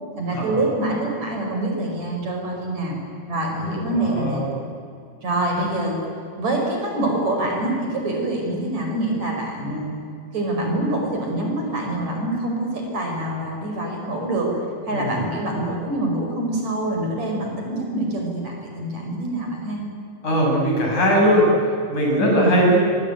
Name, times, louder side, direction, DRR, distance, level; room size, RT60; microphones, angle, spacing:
voice 1, 0.2-3.0 3.3-4.4 5.2-6.0 6.4-9.9 10.3-14.6 14.9-19.8 22.2-22.6, right 1 dB, 60° right, 1 dB, 6.6 m, -25 dB
voice 2, 3.6-4.5 14.9-15.3 20.2-21.4 21.9-22.8, equal, 70° left, -1 dB, 8.0 m, -20 dB
26.5 x 22.5 x 9.3 m, 2.6 s
omnidirectional pair, 3.7 m